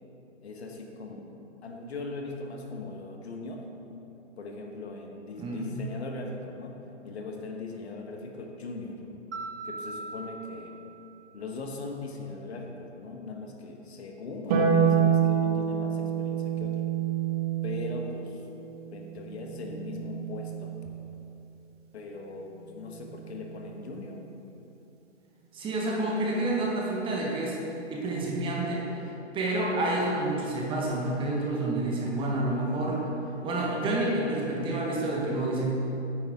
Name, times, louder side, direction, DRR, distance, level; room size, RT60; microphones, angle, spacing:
voice 1, 0.4-3.7 4.4-9.0 9.6-10.8 11.3-16.8 17.6-18.4 18.9-20.8 21.9-24.2, left 3 dB, 60° left, 2 dB, 1.3 m, -40 dB
voice 2, 5.4-5.7 25.5-27.6 27.9-33.0 33.4-35.6, right 2 dB, 15° right, -3 dB, 1.4 m, -29 dB
Mallet percussion, 9.3-11.7, right 3 dB, 75° right, 1.2 m, -41 dB
Harp, 14.5-21.0 22.6-23.6, right 8 dB, 30° right, 1.4 m, -28 dB
9.4 x 9.2 x 3.7 m, 3.0 s
hypercardioid pair, 135°, 36 cm